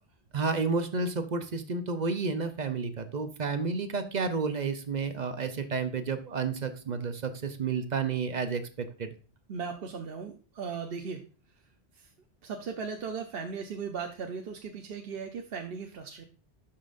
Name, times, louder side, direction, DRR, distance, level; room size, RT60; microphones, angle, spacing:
voice 1, 0.3-9.1, right 4 dB, 45° right, 9 dB, 0.8 m, -31 dB
voice 2, 9.5-11.2 12.0-12.1 12.4-16.2, right 5 dB, 65° right, 3 dB, 1.0 m, -37 dB
11.5 x 5.7 x 2.5 m, 0.37 s
omnidirectional pair, 1.1 m